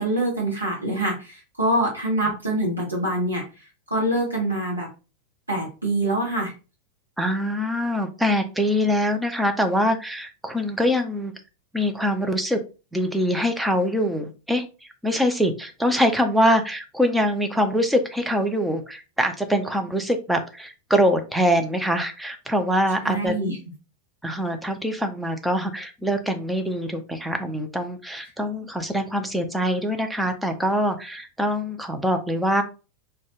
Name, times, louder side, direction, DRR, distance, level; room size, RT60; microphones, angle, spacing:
voice 1, 0.0-3.4 3.9-4.9 5.5-6.5 23.0-23.6, right 1 dB, 80° right, -3 dB, 0.8 m, -25 dB
voice 2, 7.2-11.3 11.7-12.6 12.9-14.6 15.0-23.3 24.2-32.6, equal, 5° right, 6 dB, 0.4 m, -24 dB
2.2 x 2.1 x 3.0 m, 0.32 s
figure-of-eight pair, 90°, 0 cm